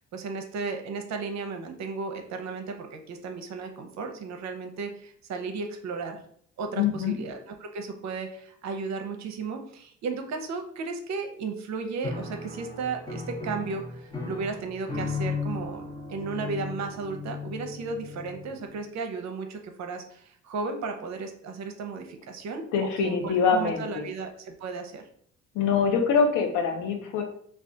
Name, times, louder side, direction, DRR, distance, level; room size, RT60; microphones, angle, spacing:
voice 1, 0.1-6.2 6.6-25.0, right 4 dB, 65° right, 5 dB, 0.6 m, -34 dB
voice 2, 6.8-7.2 22.7-24.1 25.5-27.2, left 6 dB, 85° left, 4 dB, 0.6 m, -24 dB
Piano, 12.0-18.8, left 4 dB, 15° left, 0.8 m, -36 dB
2.3 x 2.3 x 3.8 m, 0.63 s
cardioid pair, 90°, 30 cm